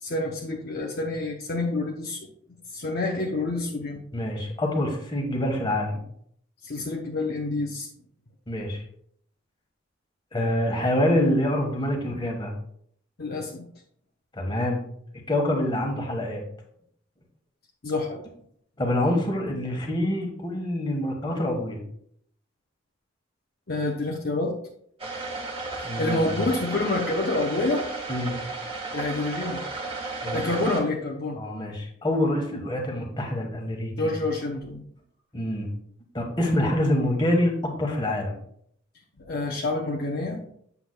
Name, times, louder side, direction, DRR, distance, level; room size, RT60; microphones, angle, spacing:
voice 1, 0.0-2.3 2.7-4.0 6.6-7.9 13.2-13.7 17.8-18.2 23.7-24.6 26.0-27.9 28.9-29.6 30.3-31.4 34.0-34.8 39.2-40.5, left 2 dB, 50° left, -1 dB, 0.8 m, -28 dB
voice 2, 4.1-6.0 8.5-8.8 10.3-12.5 14.3-14.8 15.3-16.4 18.8-21.8 25.8-26.4 28.1-28.4 30.2-30.4 31.4-34.1 35.3-35.7 36.1-38.4, left 1 dB, 25° left, 1 dB, 1.3 m, -26 dB
sound 1, 25.0-30.8, right 3 dB, 30° right, 1.3 m, -33 dB
8.1 x 7.0 x 2.2 m, 0.67 s
head